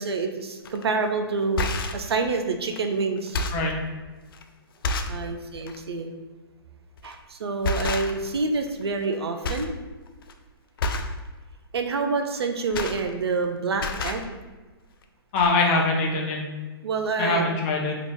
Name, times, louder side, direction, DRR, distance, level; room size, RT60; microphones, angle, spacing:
voice 1, 0.0-1.7 1.9-3.4 5.1-6.1 7.0-9.7 11.7-14.2 16.8-17.5, right 4 dB, 80° right, 5 dB, 0.4 m, -27 dB
sound 1, 0.6-0.8 1.4-2.1 2.7-2.8 3.2-3.7 4.3-4.4 4.8-5.2 5.6-5.8 7.0-7.2 7.6-8.4 8.7-9.1 9.4-9.8 10.1-10.3 10.8-11.2 12.3-13.5 13.7-14.3 15.0-15.1 15.3-15.5, left 2 dB, 65° left, 0.4 m, -29 dB
voice 2, 15.3-16.5 17.2-18.0, left 3 dB, 35° left, 0 dB, 0.7 m, -23 dB
2.9 x 2.5 x 3.5 m, 1.3 s
hypercardioid pair, 130°, 13 cm